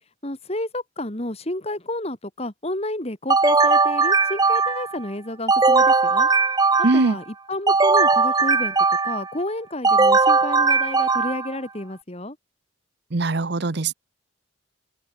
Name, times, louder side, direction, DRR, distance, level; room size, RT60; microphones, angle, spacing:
voice 1, 0.2-6.3 6.9-8.8 9.0-12.4, left 1 dB, 30° left, 2.3 m, -30 dB
sound 1, 3.3-5.0 5.5-7.2 7.7-9.3 9.8-11.5, right 4 dB, 20° right, 0.6 m, -18 dB
voice 2, 6.8-7.2 13.1-13.9, right 3 dB, 55° right, 0.8 m, -21 dB
open air
head